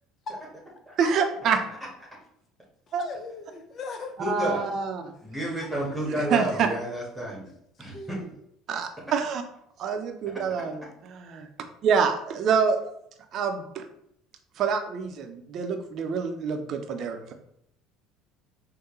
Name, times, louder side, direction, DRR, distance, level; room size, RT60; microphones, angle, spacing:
voice 1, 1.0-1.6 2.9-3.0 4.3-5.1 6.2-6.7 8.7-9.4 9.8-11.5 11.8-12.8 13.3-13.8 14.6-17.3, right 6 dB, 50° right, 6 dB, 0.6 m, -26 dB
voice 2, 2.9-4.2 5.6-6.2 7.8-8.2, left 4 dB, 40° left, 6 dB, 0.7 m, -39 dB
voice 3, 4.2-4.7 5.2-7.5 7.8-8.2, right 1 dB, 5° right, -5 dB, 1.4 m, -30 dB
6.3 x 2.2 x 3.1 m, 0.74 s
figure-of-eight pair, 60°, 0 cm